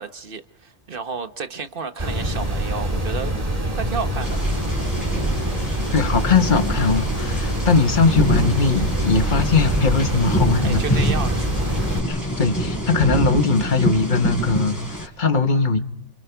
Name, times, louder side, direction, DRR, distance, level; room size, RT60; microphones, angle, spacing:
voice 1, 0.0-4.4 10.6-11.8, right 5 dB, 50° right, 9 dB, 1.4 m, -32 dB
sound 1, 2.0-12.0, right 1 dB, 30° right, 2.7 m, -25 dB
sound 2, 4.2-15.1, equal, 15° left, 3.7 m, -26 dB
voice 2, 5.9-10.8 12.1-15.8, left 4 dB, 40° left, 7 dB, 1.6 m, -20 dB
28.5 x 28.0 x 4.7 m, 0.66 s
omnidirectional pair, 1.2 m